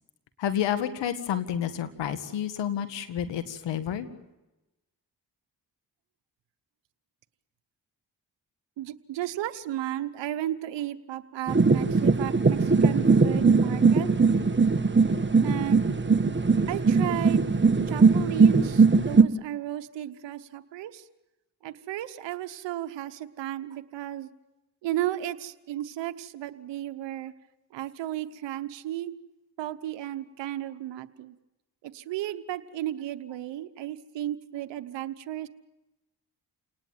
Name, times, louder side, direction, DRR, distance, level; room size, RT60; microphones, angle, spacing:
voice 1, 0.4-4.1, left 9 dB, 85° left, 10 dB, 1.9 m, -30 dB
voice 2, 8.8-14.1 15.4-15.9 16.7-17.5 17.9-21.0 21.6-24.3 24.8-27.3 27.7-29.1 29.6-31.3 31.8-35.5, right 13 dB, 85° right, 9 dB, 1.0 m, -34 dB
sound 1, 11.5-19.2, right 4 dB, 25° right, 1.6 m, -20 dB
29.0 x 19.0 x 9.1 m, 1.0 s
supercardioid pair, 45°, 42 cm